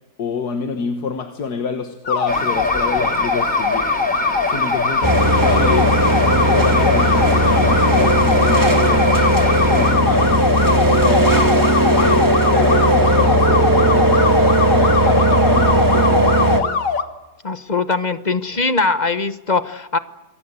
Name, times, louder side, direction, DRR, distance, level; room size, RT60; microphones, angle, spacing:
voice 1, 0.2-3.9 4.4-9.2 9.7-10.5 10.9-11.4 12.0-16.5, left 5 dB, 70° left, 2.0 m, -27 dB
sound 1, 2.1-17.0, left 5 dB, 55° left, 1.9 m, -21 dB
sound 2, 2.3-9.9, right 1 dB, 5° left, 3.6 m, -26 dB
sound 3, 5.0-16.6, right 1 dB, 10° right, 1.9 m, -16 dB
voice 2, 17.4-20.0, left 3 dB, 30° left, 1.0 m, -21 dB
27.0 x 22.5 x 8.3 m
omnidirectional pair, 1.7 m